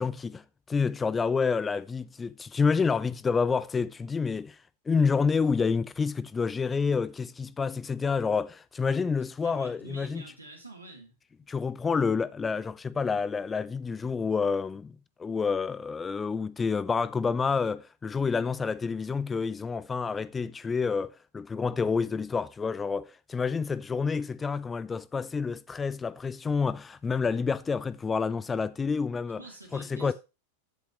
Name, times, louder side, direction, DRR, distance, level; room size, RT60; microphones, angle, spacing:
voice 1, 0.0-4.6 4.9-10.2 11.5-29.4 29.7-30.1, left 5 dB, 15° left, 0.4 m, -28 dB
voice 2, 9.4-11.2 29.4-30.1, right 3 dB, 85° right, 2.4 m, -47 dB
8.3 x 8.1 x 3.0 m
figure-of-eight pair, 90°, 0 cm